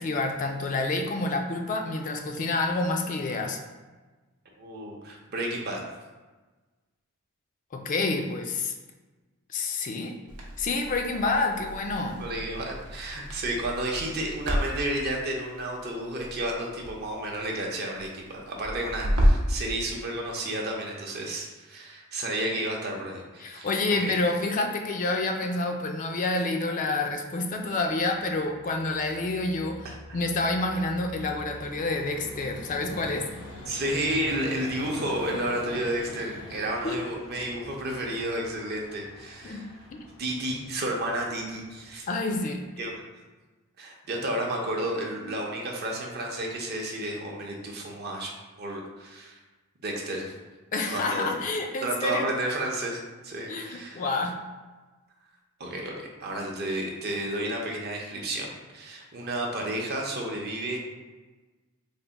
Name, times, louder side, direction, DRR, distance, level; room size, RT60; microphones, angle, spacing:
voice 1, 0.0-3.6 7.7-8.7 9.5-10.1 10.6-12.2 23.4-29.9 30.1-33.3 36.8-37.0 39.4-39.7 42.1-42.6 50.7-52.3 53.5-54.4, left 3 dB, 35° left, 3 dB, 0.3 m, -28 dB
voice 2, 4.6-5.8 12.2-23.7 24.0-24.2 29.8-30.2 33.7-39.7 40.2-42.0 42.8-43.1 43.8-48.3 48.6-49.4 49.8-50.3 50.9-51.4 51.8-54.1 55.6-60.8, right 1 dB, 50° right, 0 dB, 0.6 m, -32 dB
Crackle, 10.3-19.6, equal, 90° right, 0.7 m, -31 dB
Vehicle, 28.2-42.9, left 1 dB, 80° left, 0.7 m, -44 dB
3.4 x 2.1 x 3.9 m, 1.3 s
head